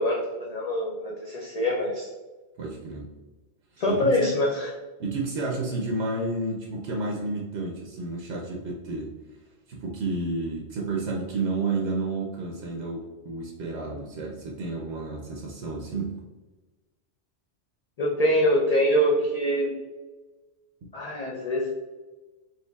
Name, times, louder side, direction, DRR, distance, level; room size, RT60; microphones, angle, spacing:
voice 1, 0.0-2.1 3.8-4.7 18.0-19.7 20.9-21.7, equal, 50° left, -3 dB, 0.4 m, -24 dB
voice 2, 2.6-3.1 3.7-4.2 5.0-9.1 9.7-16.2, right 3 dB, 75° right, -1 dB, 0.9 m, -31 dB
4.4 x 2.9 x 2.3 m, 1.2 s
omnidirectional pair, 1.2 m